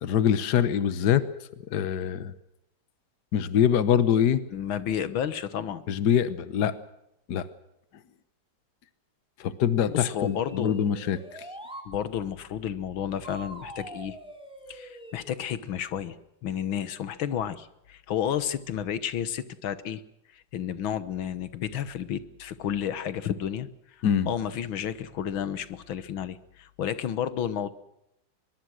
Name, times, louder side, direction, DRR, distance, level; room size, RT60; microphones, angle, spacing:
voice 1, 0.0-1.2 1.7-2.3 3.3-4.4 5.9-6.7 7.3-7.5 9.4-11.2 24.0-24.3, left 9 dB, 60° left, 14 dB, 1.6 m, -24 dB
voice 2, 4.5-5.8 9.9-10.7 11.9-14.2 14.7-16.2 16.4-20.0 20.3-27.7, left 9 dB, 85° left, 14 dB, 1.9 m, -31 dB
sound 1, 10.1-11.9 13.2-15.3, right 1 dB, 5° right, 3.1 m, -44 dB
23.5 x 22.5 x 6.4 m, 0.84 s
omnidirectional pair, 2.1 m